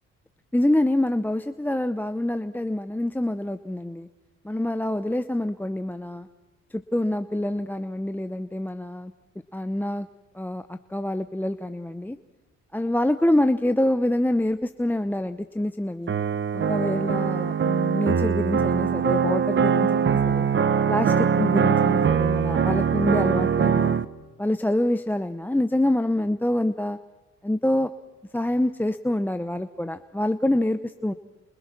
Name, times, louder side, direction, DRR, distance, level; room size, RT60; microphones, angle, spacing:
voice 1, 0.5-4.1 4.4-6.3 6.7-9.1 9.5-10.1 10.3-12.2 12.7-16.1 16.5-20.5 20.9-24.0 24.4-27.0 27.4-27.9 28.3-31.1, left 1 dB, 5° left, 9 dB, 0.8 m, -26 dB
sound 1, 16.1-24.0, right 7 dB, 40° right, 1.2 m, -22 dB
29.0 x 28.0 x 6.1 m, 1.2 s
cardioid pair, 90°, 30 cm